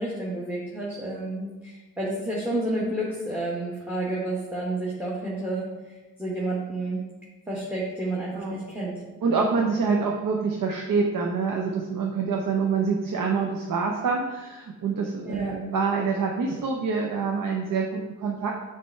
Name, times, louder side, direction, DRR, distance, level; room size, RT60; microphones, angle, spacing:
voice 1, 0.0-7.0 7.5-9.0 15.2-15.6, right 1 dB, 5° right, -5 dB, 1.2 m, -30 dB
voice 2, 9.2-18.5, right 5 dB, 70° right, 1 dB, 0.7 m, -26 dB
6.8 x 3.3 x 4.4 m, 1.2 s
cardioid pair, 70°, 34 cm